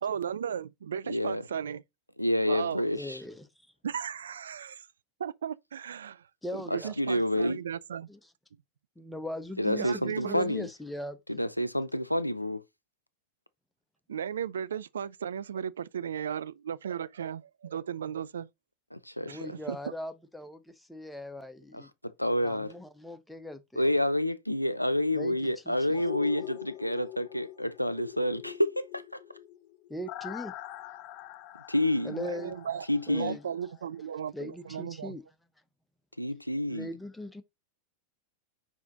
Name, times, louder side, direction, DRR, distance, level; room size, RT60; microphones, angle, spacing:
voice 1, 0.0-1.8 2.5-2.8 3.8-4.9 5.2-6.3 6.5-8.1 9.7-10.4 14.1-18.5 19.3-19.9 32.1-35.2, right 8 dB, 65° right, 0.4 m, -36 dB
voice 2, 1.1-1.4 2.2-3.2 7.0-7.6 9.6-10.7 11.3-12.6 18.9-19.5 21.7-22.7 23.8-29.2 31.7-32.1 32.9-33.4 36.2-36.9, left 1 dB, 90° left, 0.5 m, -29 dB
voice 3, 2.9-3.5 6.4-6.9 8.1-8.2 9.0-11.4 19.2-21.9 22.4-23.9 25.1-25.8 29.9-30.5 32.0-32.6 33.1-33.4 34.3-35.2 36.7-37.4, left 1 dB, 5° left, 0.9 m, -40 dB
sound 1, 25.9-33.8 34.2-34.3, left 14 dB, 45° left, 0.5 m, -44 dB
4.9 x 4.9 x 4.0 m
figure-of-eight pair, 90°, 0 cm